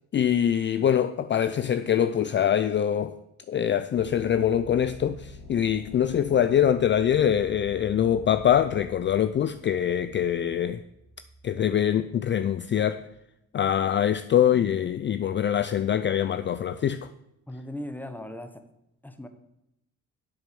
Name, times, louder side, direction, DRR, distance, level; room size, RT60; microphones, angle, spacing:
voice 1, 0.1-3.2 3.5-10.8 11.4-13.0 13.5-17.1, left 9 dB, 40° left, 0.4 m, -24 dB
sound 1, 3.9-13.0, left 2 dB, 75° left, 3.3 m, -47 dB
voice 2, 17.5-18.6 19.0-19.3, left 1 dB, 5° left, 1.1 m, -38 dB
7.9 x 7.2 x 6.8 m
cardioid pair, 90°, 30 cm